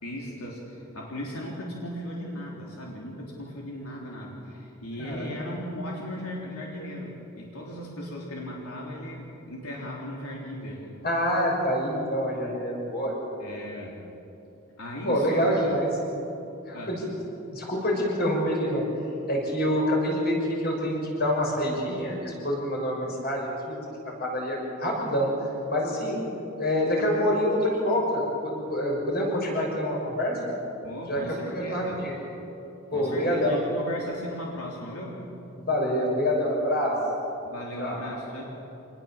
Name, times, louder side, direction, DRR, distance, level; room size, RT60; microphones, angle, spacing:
voice 1, 0.0-10.9 13.4-14.0 14.8-15.8 16.7-17.0 30.8-32.0 32.9-35.2 37.5-38.5, equal, 85° left, -2 dB, 3.5 m, -37 dB
voice 2, 11.0-13.1 15.0-15.9 16.7-17.0 17.5-18.8 19.3-23.8 24.0-25.3 25.7-26.2 26.6-30.5 31.1-31.2 31.5-32.1 32.9-33.6 35.5-37.0 37.8-38.0, equal, 45° left, -1 dB, 6.4 m, -26 dB
26.0 x 20.0 x 7.2 m, 3.0 s
head